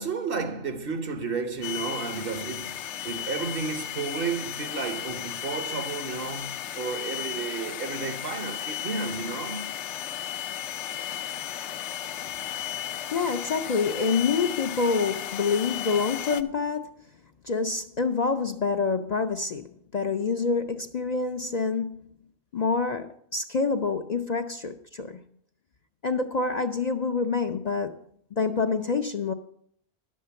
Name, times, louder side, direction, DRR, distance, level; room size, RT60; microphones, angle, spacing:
voice 1, 0.0-9.8, right 4 dB, 55° right, 1.0 m, -32 dB
sound 1, 1.6-16.4, left 10 dB, 80° left, 0.9 m, -35 dB
voice 2, 13.1-17.0 17.4-22.0 22.5-25.2 26.0-27.9 28.3-29.3, left 4 dB, 50° left, 0.6 m, -27 dB
11.0 x 7.4 x 6.8 m
omnidirectional pair, 1.2 m